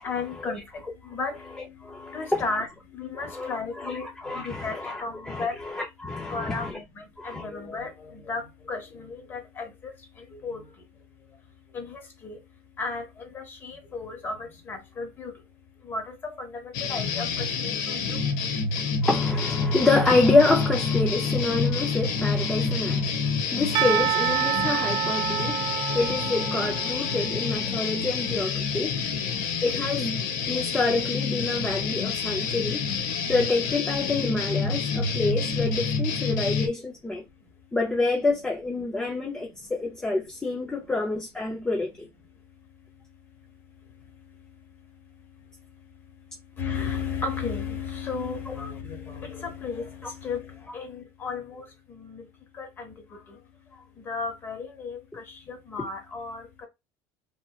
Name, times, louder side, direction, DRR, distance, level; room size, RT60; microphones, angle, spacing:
voice 1, 0.0-0.6 1.1-1.4 2.1-2.7 2.9-4.1 4.3-5.5 6.3-6.8 7.2-8.4 8.7-9.9 10.4-10.6 11.7-12.4 12.8-13.0 13.3-15.3 15.9-18.2 46.6-50.4 50.7-51.6 52.0-52.2 52.6-52.9 54.1-56.4, left 4 dB, 25° left, 0.9 m, -34 dB
voice 2, 1.8-2.4 3.1-6.7 7.2-7.4 19.0-25.6 25.9-29.0 29.6-30.2 30.5-32.8 33.3-37.2 37.7-42.1 48.5-48.6, left 3 dB, 10° left, 0.4 m, -27 dB
sound 1, 16.7-36.7, left 5 dB, 85° left, 0.8 m, -28 dB
Percussion, 23.7-27.6, right 14 dB, 45° right, 0.5 m, -28 dB
3.0 x 2.7 x 2.3 m
cardioid pair, 160°, 9 cm